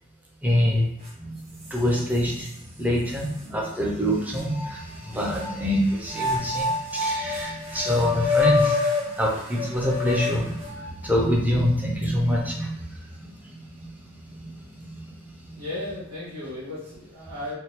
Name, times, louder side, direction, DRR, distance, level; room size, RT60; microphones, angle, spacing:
voice 1, 0.4-0.9 1.2-15.6, equal, 10° right, -2 dB, 0.5 m, -26 dB
sound 1, 1.0-1.1 1.6-2.5 3.2-3.3 4.4-5.5 6.1-11.0, left 3 dB, 30° right, 0.9 m, -27 dB
voice 2, 15.5-17.5, left 2 dB, 90° right, -12 dB, 1.4 m, -35 dB
3.5 x 2.2 x 2.9 m, 0.76 s
head